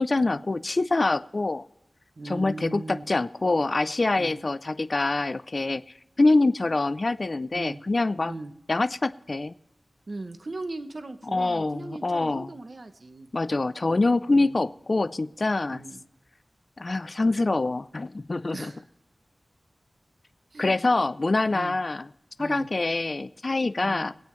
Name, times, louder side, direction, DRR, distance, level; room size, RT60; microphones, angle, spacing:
voice 1, 0.0-1.6 2.3-5.8 6.2-8.3 8.7-9.5 11.3-12.5 13.3-15.8 16.8-18.7 20.6-22.1 22.4-24.1, left 2 dB, 50° left, 13 dB, 0.4 m, -25 dB
voice 2, 2.2-3.0 4.2-4.4 7.5-7.8 8.2-8.5 10.1-13.3 14.3-14.5 15.7-16.0 18.5-18.8 20.5-20.8 21.5-21.8 22.4-22.7 23.8-24.1, right 2 dB, 60° right, 8 dB, 1.0 m, -38 dB
23.5 x 8.8 x 3.1 m, 0.87 s
wide cardioid pair, 60°, 0 cm